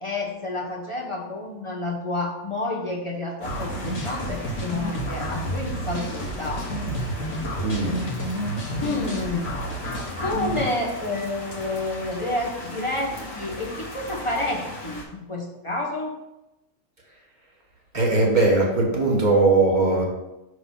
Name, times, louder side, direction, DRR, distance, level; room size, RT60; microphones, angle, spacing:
voice 1, 0.0-6.7 8.8-9.6 10.2-16.2, left 2 dB, 30° left, -1 dB, 0.8 m, -29 dB
sound 1, 3.4-10.7, equal, 70° left, 1.4 m, -30 dB
sound 2, 3.4-15.1, left 1 dB, 55° left, 1.5 m, -38 dB
voice 2, 7.6-8.0 17.9-20.0, right 3 dB, 35° right, -1 dB, 1.5 m, -20 dB
5.8 x 3.3 x 5.3 m, 0.95 s
omnidirectional pair, 1.4 m